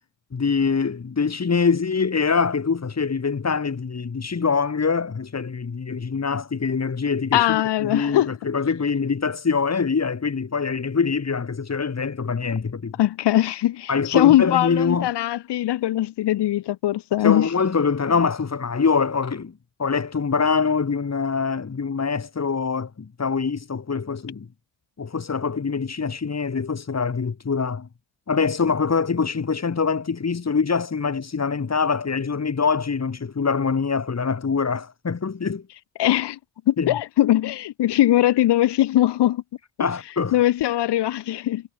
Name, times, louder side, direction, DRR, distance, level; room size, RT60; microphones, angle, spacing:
voice 1, 0.3-12.9 13.9-15.1 17.2-19.5 19.8-24.5 25.0-27.9 28.3-35.6 36.8-36.9 39.8-40.3, left 5 dB, 40° left, 6.8 m, -24 dB
voice 2, 7.3-8.4 13.0-17.5 36.0-36.4 36.7-39.4 40.3-41.6, left 14 dB, 70° left, 7.3 m, -20 dB
hypercardioid pair, 50°, 42 cm